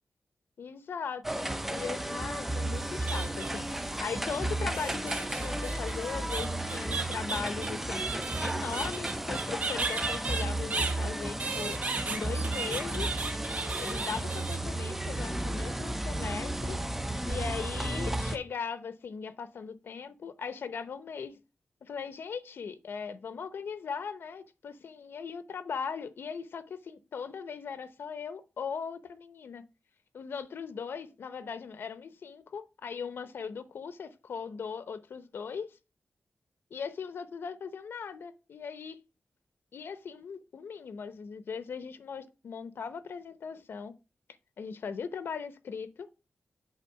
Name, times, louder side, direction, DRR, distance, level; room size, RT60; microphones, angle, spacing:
voice 1, 0.6-8.1 8.4-11.8 12.1-13.1 13.8-16.8 17.2-21.4 21.8-29.6 30.1-35.8 36.7-39.0 39.7-43.9 44.6-46.1, left 6 dB, 80° left, 0.7 m, -39 dB
sound 1, 1.2-18.4, right 1 dB, 5° right, 0.6 m, -33 dB
sound 2, 2.7-3.7 4.7-11.0 11.4-14.6, right 4 dB, 40° right, 1.1 m, -35 dB
8.1 x 3.7 x 5.6 m
wide cardioid pair, 140°, 4 cm